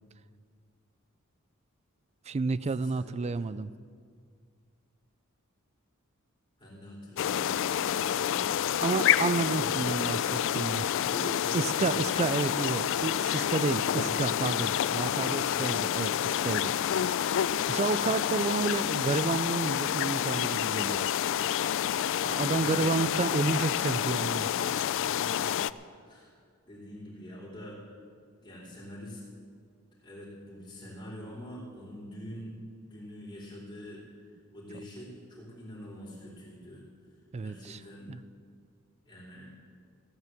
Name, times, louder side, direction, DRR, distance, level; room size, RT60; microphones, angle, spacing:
voice 1, 2.3-3.7 8.8-10.9 11.5-16.7 17.0-17.4 17.7-21.1 22.3-24.7 37.3-37.8 38.1-38.2, right 4 dB, 30° right, 16 dB, 0.3 m, -31 dB
voice 2, 2.8-3.5 6.6-8.7 9.3-10.3 10.7-12.1 13.8-14.5 15.2-16.2 25.0-25.5 25.9-26.3 26.7-27.8 28.4-29.2 30.0-32.6 32.8-36.8 37.4-38.2 39.1-39.5, equal, 25° left, -11 dB, 3.4 m, -45 dB
sound 1, 7.2-25.7, left 10 dB, 65° left, 0.3 m, -28 dB
15.0 x 9.3 x 7.5 m, 2.1 s
head